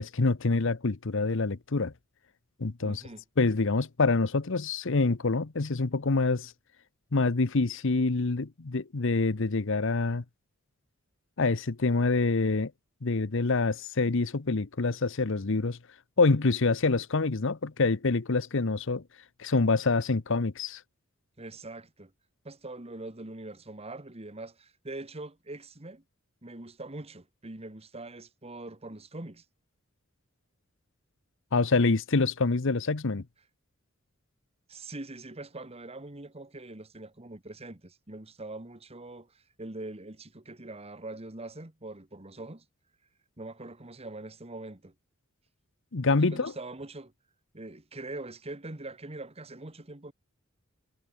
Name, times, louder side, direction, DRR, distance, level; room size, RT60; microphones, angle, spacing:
voice 1, 0.0-1.9 2.6-3.0 3.4-6.5 7.1-10.2 11.4-12.7 13.0-15.8 16.2-19.0 19.4-20.8 31.5-33.2 45.9-46.5, left 3 dB, 65° left, 0.9 m, -26 dB
voice 2, 2.8-3.2 21.4-22.1 22.4-26.0 26.4-29.4 34.7-42.7 43.4-44.9 46.2-47.1 47.5-50.1, right 2 dB, 30° right, 1.7 m, -43 dB
head